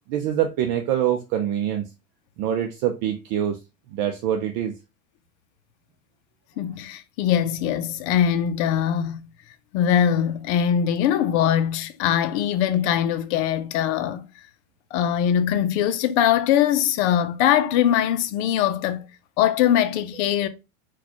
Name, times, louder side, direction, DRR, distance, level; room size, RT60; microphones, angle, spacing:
voice 1, 0.1-1.9 2.4-3.6 3.9-4.7, right 10 dB, 50° right, 0.6 m, -24 dB
voice 2, 6.6-9.2 9.7-14.3 14.9-19.1 19.4-20.5, left 10 dB, 55° left, 0.6 m, -22 dB
3.9 x 2.4 x 3.0 m
hypercardioid pair, 105°, 42 cm